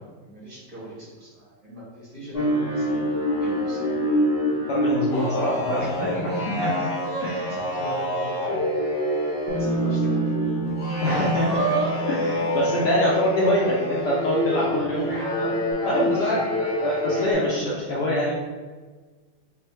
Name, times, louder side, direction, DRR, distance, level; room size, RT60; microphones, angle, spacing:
voice 1, 0.0-3.1 3.4-4.0 5.8-6.5 7.5-8.9 9.5-10.5 10.9-11.0 14.5-14.9 15.8-16.6, equal, 45° right, -9 dB, 1.7 m, -38 dB
sound 1, 2.3-17.3, equal, 30° left, 1.2 m, -26 dB
voice 2, 4.7-6.3 6.6-6.9 7.2-7.5 11.0-11.7 12.1-15.1 15.4-15.5 15.8-16.4 16.8-18.3, equal, 70° left, -4 dB, 1.0 m, -25 dB
Bass guitar, 9.5-15.7, right 6 dB, 75° right, 1.3 m, -32 dB
3.6 x 3.3 x 3.0 m, 1.4 s
omnidirectional pair, 2.3 m